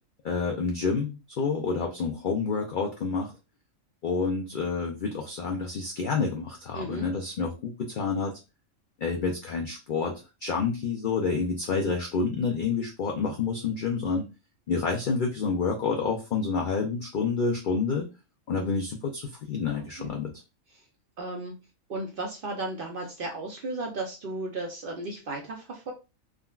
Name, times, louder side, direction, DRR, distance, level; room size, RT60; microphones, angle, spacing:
voice 1, 0.2-3.3 4.0-8.4 9.0-10.1 10.4-14.2 14.7-18.1 18.5-20.3, left 4 dB, 70° left, 1 dB, 0.4 m, -28 dB
voice 2, 6.7-7.1 20.0-20.1 21.2-21.5 21.9-25.9, right 2 dB, 55° right, 1 dB, 0.6 m, -34 dB
3.7 x 2.1 x 2.3 m, 0.29 s
omnidirectional pair, 1.4 m